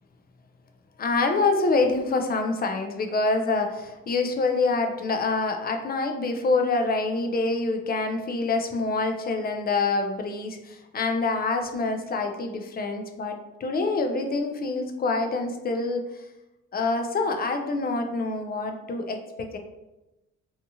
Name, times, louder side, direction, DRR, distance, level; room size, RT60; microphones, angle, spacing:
voice 1, 1.0-16.1 16.7-19.6, left 3 dB, 30° left, 5 dB, 0.4 m, -26 dB
2.7 x 2.4 x 2.7 m, 1.0 s
cardioid pair, 90°, 30 cm